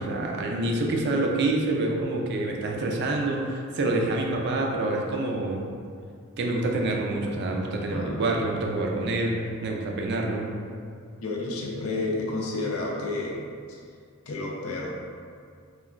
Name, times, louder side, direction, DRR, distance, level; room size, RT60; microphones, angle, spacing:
voice 1, 0.0-5.7 6.4-10.5, right 2 dB, 50° right, 1 dB, 0.3 m, -27 dB
voice 2, 7.8-8.3 11.2-13.4 13.7-13.8 14.3-14.9, left 2 dB, 90° left, -2 dB, 0.5 m, -30 dB
3.0 x 2.2 x 2.4 m, 2.2 s
head